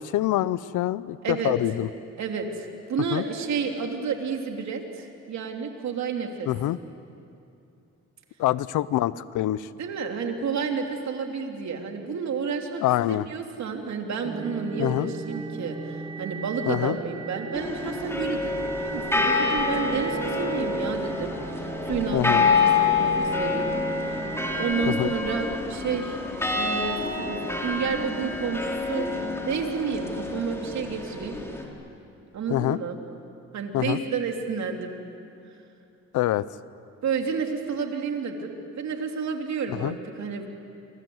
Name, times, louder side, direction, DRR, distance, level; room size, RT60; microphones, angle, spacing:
voice 1, 0.0-1.9 3.1-3.2 6.5-6.8 8.4-9.7 12.8-13.3 14.8-15.1 16.7-17.0 22.1-22.5 24.9-25.1 32.5-32.8 33.7-34.0 36.1-36.4 39.8-40.0, left 14 dB, 85° left, 18 dB, 0.8 m, -25 dB
voice 2, 1.2-1.6 2.2-6.5 9.8-12.8 13.1-23.7 24.1-24.2 24.6-26.2 26.5-31.3 32.3-33.0 33.5-35.0 37.0-40.5, right 5 dB, 65° right, 3 dB, 3.3 m, -30 dB
sound 1, 14.2-24.7, right 4 dB, 15° right, 1.2 m, -37 dB
sound 2, 17.5-31.6, left 4 dB, 10° left, 4.3 m, -27 dB
28.0 x 25.0 x 8.0 m, 2.6 s
cardioid pair, 90°, 30 cm